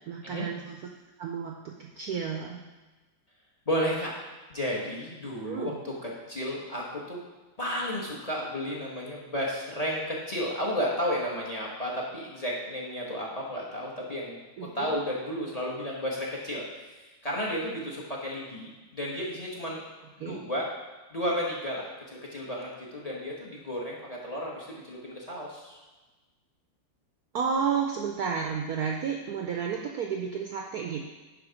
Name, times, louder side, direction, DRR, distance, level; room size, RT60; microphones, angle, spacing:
voice 1, 0.1-0.8 1.2-2.6 5.4-5.8 14.6-15.0 20.2-20.4 27.3-31.1, right 6 dB, 70° right, 1 dB, 0.9 m, -32 dB
voice 2, 3.7-4.1 4.5-7.2 7.6-19.8 20.2-20.7 21.1-25.8, equal, 25° left, -3 dB, 0.8 m, -33 dB
10.0 x 3.4 x 5.0 m, 1.2 s
omnidirectional pair, 2.2 m